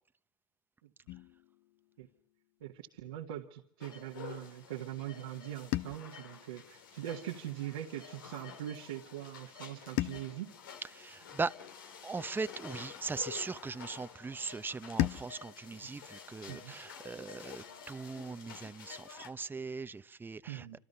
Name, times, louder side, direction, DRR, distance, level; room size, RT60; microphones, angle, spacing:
sound 1, 1.1-3.3 5.7-8.1 10.0-12.5 15.0-17.5, left 16 dB, 70° left, 1.0 m, -41 dB
voice 1, 2.6-10.5 16.5-16.7 20.5-20.8, right 12 dB, 85° right, 1.9 m, -42 dB
sound 2, 3.8-19.3, left 7 dB, 85° left, 2.6 m, -50 dB
voice 2, 10.9-11.6 12.0-20.8, right 4 dB, 20° right, 0.9 m, -40 dB
27.0 x 26.5 x 5.7 m
hypercardioid pair, 75°, 11 cm